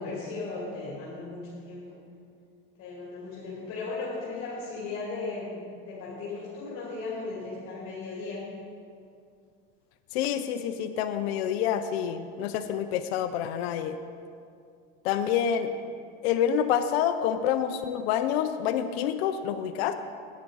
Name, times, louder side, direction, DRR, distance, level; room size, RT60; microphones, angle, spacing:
voice 1, 0.0-2.0 2.8-8.5, left 3 dB, 50° left, -5 dB, 2.5 m, -36 dB
voice 2, 10.1-14.0 15.0-15.7 16.2-19.9, left 9 dB, 90° left, 8 dB, 0.6 m, -27 dB
10.5 x 8.4 x 3.9 m, 2.3 s
supercardioid pair, 125°, 30 cm